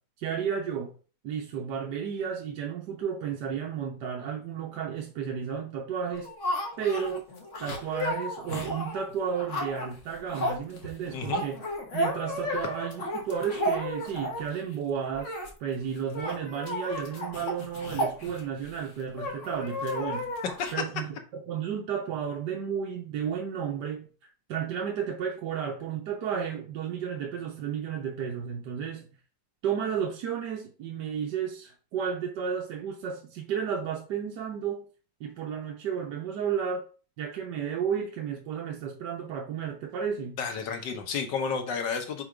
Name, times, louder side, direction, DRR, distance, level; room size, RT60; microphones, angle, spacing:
voice 1, 0.2-0.9 1.2-6.3 6.8-7.2 7.6-11.6 11.9-20.3 20.7-24.1 24.5-29.1 29.6-34.9 35.2-36.8 37.2-40.4, right 7 dB, 70° right, 1.4 m, -32 dB
sound 1, 6.1-14.6 15.1-15.5 15.8-15.9 16.1-18.7 19.2-20.7, equal, 45° left, 1.5 m, -33 dB
voice 2, 11.1-11.4 20.6-20.7 40.4-42.2, left 5 dB, 75° left, 1.7 m, -31 dB
4.8 x 4.2 x 5.0 m
omnidirectional pair, 2.0 m